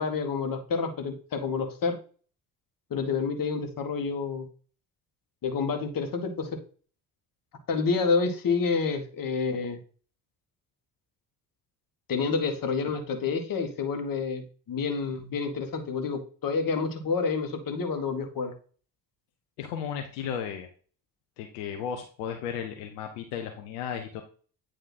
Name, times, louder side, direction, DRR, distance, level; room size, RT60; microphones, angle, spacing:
voice 1, 0.0-2.0 2.9-4.5 5.4-6.6 7.7-9.8 12.1-18.5, left 5 dB, 45° left, 6 dB, 1.5 m, -28 dB
voice 2, 19.6-20.7 21.4-24.2, left 8 dB, 75° left, 4 dB, 1.0 m, -34 dB
9.0 x 3.1 x 4.1 m, 0.40 s
hypercardioid pair, 50°, 48 cm